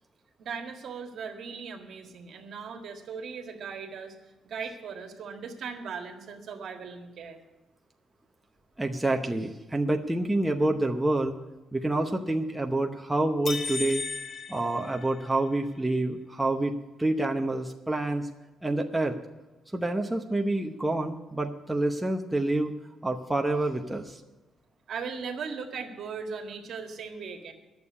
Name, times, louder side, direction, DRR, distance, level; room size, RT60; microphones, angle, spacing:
voice 1, 0.4-4.1 4.4-7.4 24.9-27.5, right 5 dB, 60° right, 4 dB, 1.7 m, -38 dB
voice 2, 8.8-11.3 11.7-14.0 14.5-16.7 17.0-18.3 18.6-19.2 19.7-22.7 23.0-24.2, right 2 dB, 10° right, 2 dB, 0.8 m, -27 dB
sound 1, 13.5-15.6, left 4 dB, 45° left, 1.2 m, -35 dB
10.5 x 7.2 x 9.5 m, 1.1 s
cardioid pair, 125°, 0 cm